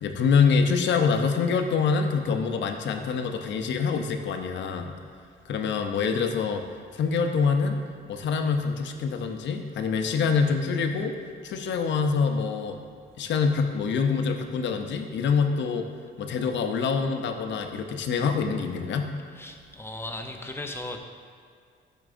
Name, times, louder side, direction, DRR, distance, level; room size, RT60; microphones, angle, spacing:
voice 1, 0.0-4.9 5.5-6.6 6.9-7.8 8.1-11.1 11.4-12.8 13.2-15.9 16.2-19.1, left 5 dB, 65° left, 5 dB, 0.6 m, -25 dB
voice 2, 19.3-21.0, left 1 dB, 10° left, 3 dB, 0.6 m, -36 dB
11.0 x 4.7 x 2.5 m, 2.2 s
cardioid pair, 90°, 20 cm